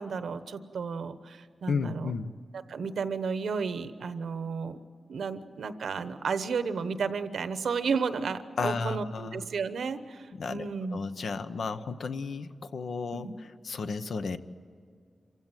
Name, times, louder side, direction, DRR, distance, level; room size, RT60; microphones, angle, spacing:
voice 1, 0.0-2.1 2.7-4.8 5.1-11.0 13.1-13.3, right 5 dB, 85° right, 11 dB, 1.0 m, -33 dB
voice 2, 1.7-2.3 8.6-9.4 10.4-14.4, left 4 dB, 75° left, 10 dB, 0.9 m, -33 dB
27.0 x 16.0 x 9.0 m, 2.3 s
wide cardioid pair, 125°, 0 cm